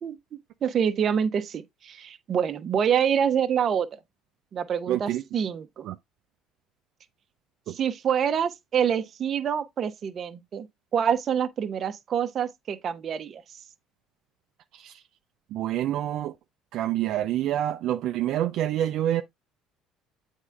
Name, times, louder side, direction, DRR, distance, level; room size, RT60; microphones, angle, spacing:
voice 1, 0.6-3.9 4.5-5.8 7.7-10.7 10.9-13.6, right 8 dB, 40° right, 0.8 m, -26 dB
voice 2, 4.9-5.2 5.8-5.9 7.7-7.8 14.7-15.0 15.5-16.3 16.7-19.2, right 12 dB, 65° right, 0.5 m, -27 dB
8.1 x 3.7 x 3.4 m
cardioid pair, 115°, 0 cm